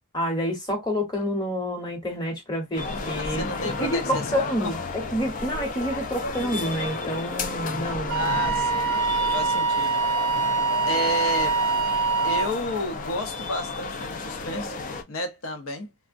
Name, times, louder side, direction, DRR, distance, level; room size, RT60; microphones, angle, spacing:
voice 1, 0.1-8.4, equal, 20° left, 1.0 m, -28 dB
sound 1, 2.8-15.0, left 4 dB, 35° left, 0.4 m, -32 dB
voice 2, 3.2-4.7 8.1-8.9 9.3-10.0 10.9-11.6 12.2-14.8 15.1-15.9, left 1 dB, 70° left, 0.7 m, -31 dB
Wind instrument woodwind instrument, 8.1-12.6, right 5 dB, 75° right, 0.5 m, -24 dB
3.4 x 2.1 x 2.5 m
head